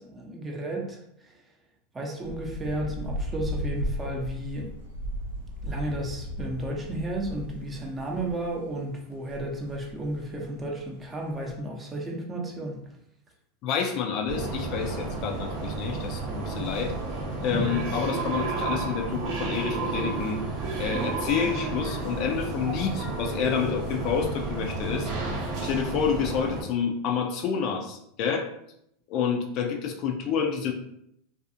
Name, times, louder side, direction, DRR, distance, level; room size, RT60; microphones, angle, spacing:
voice 1, 0.0-1.4 1.9-4.7 5.6-12.8 17.5-17.6, right 1 dB, 20° right, 0 dB, 0.6 m, -33 dB
sound 1, 2.2-11.5, equal, 90° right, 0.6 m, -36 dB
voice 2, 13.6-16.9 17.4-20.4 20.8-25.1 25.6-28.5 29.1-30.7, left 7 dB, 50° left, 3 dB, 0.4 m, -28 dB
sound 2, 14.3-26.6, right 3 dB, 55° right, 0.7 m, -31 dB
2.5 x 2.3 x 2.6 m, 0.75 s
hypercardioid pair, 95°, 0 cm